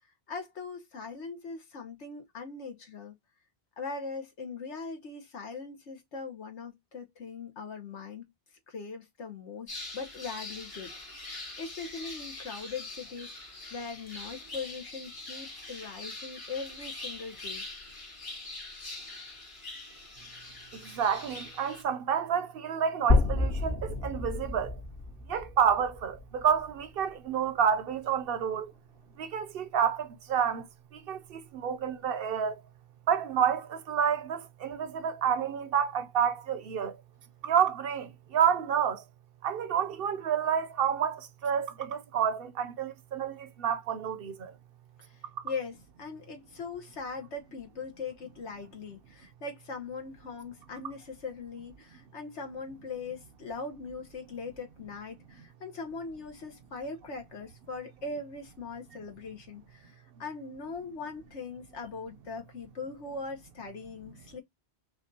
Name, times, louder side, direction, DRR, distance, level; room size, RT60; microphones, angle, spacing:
voice 1, 0.3-3.1 3.8-8.3 8.7-10.9 11.2-11.3 11.6-17.6 45.4-59.9 60.2-64.4, left 4 dB, 85° left, 1.4 m, -40 dB
sound 1, 9.7-21.8, left 2 dB, 45° left, 2.5 m, -43 dB
voice 2, 20.9-24.7 25.3-28.7 29.2-30.6 30.9-32.5 33.1-36.9 37.4-39.0 39.4-44.5, right 8 dB, 65° right, 0.7 m, -29 dB
sound 2, 23.1-27.0, left 3 dB, 65° left, 2.2 m, -29 dB
5.8 x 2.5 x 2.7 m
omnidirectional pair, 1.1 m